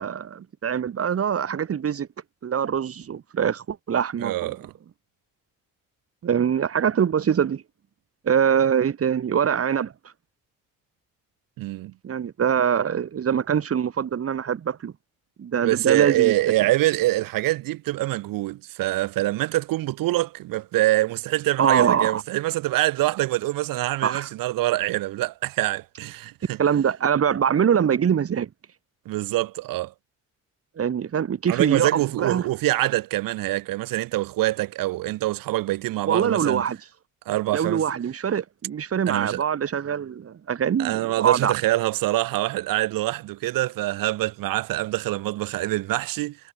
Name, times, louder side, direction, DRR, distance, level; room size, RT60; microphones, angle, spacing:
voice 1, 0.0-2.1 2.4-4.4 6.2-7.6 8.2-9.9 12.0-14.9 15.4-16.3 21.6-22.2 24.0-24.3 26.6-28.5 30.8-32.4 36.1-36.8 37.5-41.5, right 8 dB, 45° right, 4.6 m, -23 dB
voice 2, 4.2-4.7 11.6-11.9 15.6-26.6 29.0-29.9 31.5-36.7 37.2-37.8 39.1-39.4 40.8-46.4, right 17 dB, 85° right, 3.2 m, -25 dB
cardioid pair, 115°, 33 cm